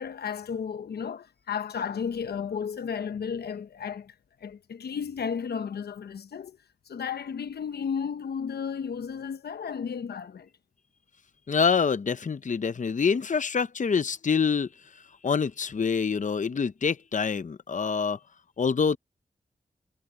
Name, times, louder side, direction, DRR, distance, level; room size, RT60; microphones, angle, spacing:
voice 1, 0.0-4.1 4.4-6.6 6.9-10.5, left 7 dB, 85° left, 1.0 m, -33 dB
voice 2, 11.5-14.7 14.9-18.2 18.6-19.0, left 6 dB, 50° left, 0.7 m, -26 dB
cardioid pair, 40°, 16 cm